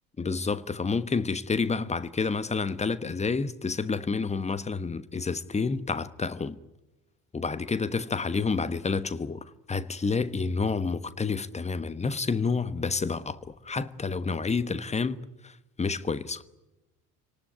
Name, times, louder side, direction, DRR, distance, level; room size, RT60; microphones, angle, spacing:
voice 1, 0.2-6.6 7.3-15.2 15.4-16.4, left 4 dB, 15° left, 1.2 m, -29 dB
27.5 x 19.0 x 9.7 m
figure-of-eight pair, 60°, 47 cm